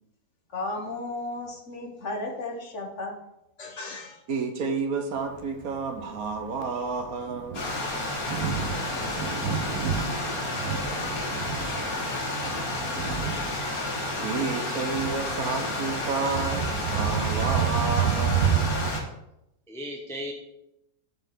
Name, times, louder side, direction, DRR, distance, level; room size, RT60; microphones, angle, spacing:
voice 1, 0.5-3.2 3.6-4.2, left 2 dB, 50° left, 2 dB, 1.5 m, -34 dB
voice 2, 4.3-7.7 11.6-12.0 14.2-18.7, right 4 dB, 70° right, 5 dB, 1.4 m, -31 dB
Thunder, 5.3-19.0, right 8 dB, 85° right, 1.3 m, -31 dB
Stream, 7.5-19.0, left 2 dB, 65° left, 2.1 m, -31 dB
voice 3, 19.7-20.3, equal, 5° left, 0 dB, 0.6 m, -40 dB
6.7 x 5.4 x 5.9 m, 0.85 s
omnidirectional pair, 1.6 m